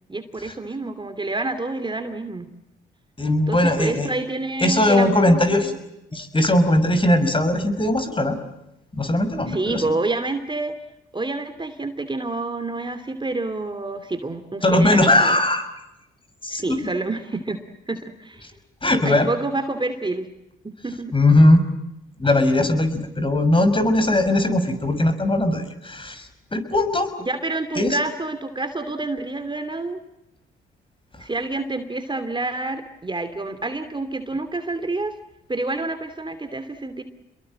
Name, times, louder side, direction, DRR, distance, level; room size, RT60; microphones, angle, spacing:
voice 1, 0.1-2.5 3.5-5.7 9.5-10.7 11.1-15.4 16.5-17.6 17.9-18.5 19.0-20.3 20.6-21.1 27.2-30.0 31.2-35.1 35.5-37.0, right 2 dB, 20° right, 9 dB, 2.8 m, -28 dB
voice 2, 3.2-4.1 4.6-5.7 6.1-8.4 9.0-9.8 14.6-15.6 16.4-16.8 18.8-19.3 21.1-21.6 22.2-27.1 27.7-28.0, left 1 dB, 25° left, 9 dB, 6.1 m, -19 dB
28.0 x 22.0 x 7.7 m, 0.88 s
supercardioid pair, 55°, 21 cm